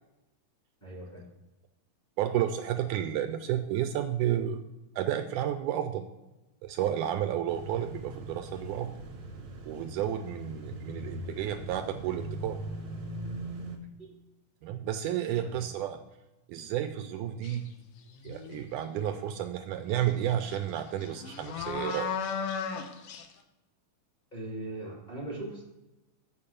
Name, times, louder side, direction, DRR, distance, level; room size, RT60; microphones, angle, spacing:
voice 1, 0.8-1.2 15.4-15.6 24.3-25.6, right 2 dB, 15° left, -4 dB, 2.1 m, -39 dB
voice 2, 2.2-4.6 5.0-6.1 6.6-8.9 9.7-12.6 14.6-16.0 16.5-17.6 18.2-22.1, right 11 dB, 80° right, 8 dB, 1.9 m, -31 dB
sound 1, 7.5-13.8, right 1 dB, 60° right, 1.4 m, -40 dB
sound 2, 17.4-17.7 18.1-18.8 20.1-20.2 20.5-23.3, left 6 dB, 75° left, 1.4 m, -36 dB
7.2 x 6.8 x 6.9 m, 1.0 s
omnidirectional pair, 3.8 m